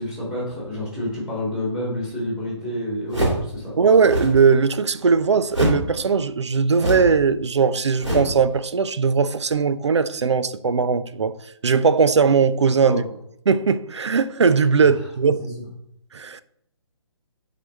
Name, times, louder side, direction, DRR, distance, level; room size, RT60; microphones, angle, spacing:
voice 1, 0.0-3.7 12.8-13.0 15.2-15.5, left 1 dB, 5° right, 2.3 m, -29 dB
sound 1, 3.1-3.5 4.0-4.4 5.5-5.9 6.7-7.2 8.0-8.4, equal, 85° right, 2.3 m, -24 dB
voice 2, 3.8-11.3 11.6-13.0 13.5-15.4 16.1-16.4, right 5 dB, 70° right, 0.5 m, -19 dB
8.4 x 3.9 x 3.2 m
figure-of-eight pair, 140°, 15 cm